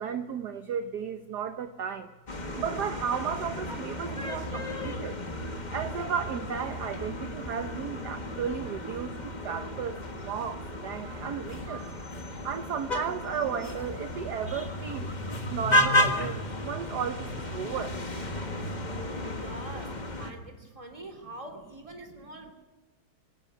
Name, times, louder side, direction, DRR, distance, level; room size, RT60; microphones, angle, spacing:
voice 1, 0.0-2.1 2.6-5.2 5.7-12.0 12.4-18.0, right 7 dB, 60° right, 9 dB, 1.4 m, -34 dB
sound 1, 2.3-20.3, left 1 dB, 25° left, 1.6 m, -33 dB
voice 2, 19.4-22.5, right 1 dB, 15° right, 4 dB, 2.8 m, -44 dB
26.0 x 10.5 x 9.5 m, 1.2 s
omnidirectional pair, 2.2 m